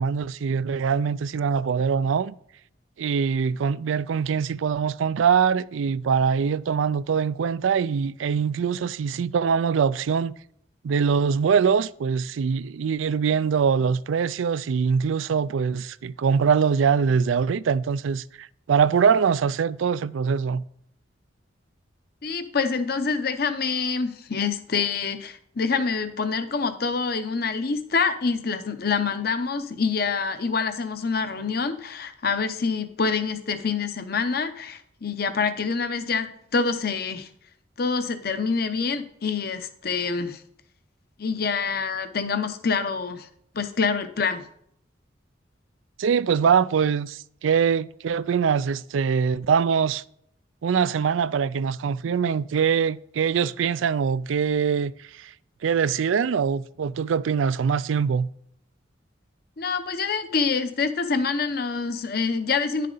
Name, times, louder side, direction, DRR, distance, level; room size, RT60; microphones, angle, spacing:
voice 1, 0.0-2.3 3.0-10.3 10.8-20.6 46.0-50.0 50.6-55.3 55.6-58.3, right 6 dB, 85° right, 0.4 m, -23 dB
voice 2, 22.2-37.3 37.8-40.4 41.2-43.3 43.5-44.5 59.6-62.9, left 5 dB, 50° left, 0.8 m, -26 dB
10.5 x 6.7 x 3.9 m
head